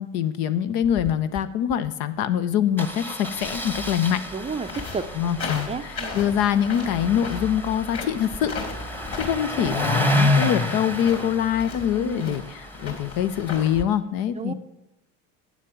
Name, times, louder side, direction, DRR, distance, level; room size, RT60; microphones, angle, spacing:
voice 1, 0.0-4.2 5.2-5.7 6.1-14.5, left 9 dB, 60° left, 13 dB, 0.9 m, -24 dB
Engine starting, 0.8-1.1 1.4-1.5 1.7-1.9 2.8-13.8, left 1 dB, 5° left, 1.2 m, -29 dB
voice 2, 4.3-5.0 5.7-6.1 9.5-9.7 12.0-12.4 14.4-14.5, right 5 dB, 15° right, 8 dB, 0.6 m, -32 dB
sound 1, 4.6-13.7, left 4 dB, 35° left, 3.3 m, -36 dB
9.5 x 7.4 x 7.2 m, 0.93 s
supercardioid pair, 100°, 39 cm